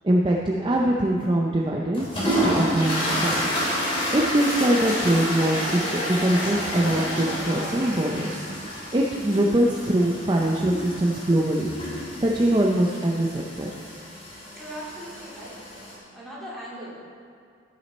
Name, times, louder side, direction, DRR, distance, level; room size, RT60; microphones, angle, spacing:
voice 1, 0.0-3.6 4.1-8.5 8.9-11.7 12.2-13.8, right 1 dB, 25° right, -2 dB, 0.5 m, -23 dB
sound 1, 1.9-16.0, equal, 30° left, 2.5 m, -29 dB
voice 2, 14.5-15.6 16.1-17.0, equal, ahead, -8 dB, 2.5 m, -39 dB
14.5 x 6.3 x 4.2 m, 2.2 s
head